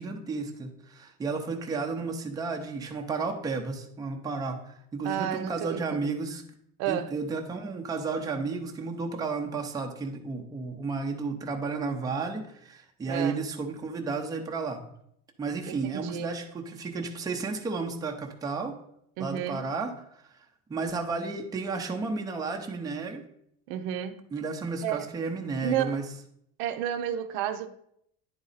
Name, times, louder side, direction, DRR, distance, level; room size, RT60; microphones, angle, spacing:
voice 1, 0.0-6.4 6.9-14.8 15.4-18.8 19.2-20.2 20.7-23.2 24.3-26.0, right 4 dB, 10° right, 0.5 m, -32 dB
voice 2, 5.0-6.0 6.8-7.1 13.1-13.4 15.7-16.3 19.2-19.7 23.7-24.3 24.8-25.1 25.6-26.0 26.6-27.7, right 10 dB, 75° right, 0.7 m, -31 dB
9.9 x 4.1 x 4.0 m
cardioid pair, 165°, 32 cm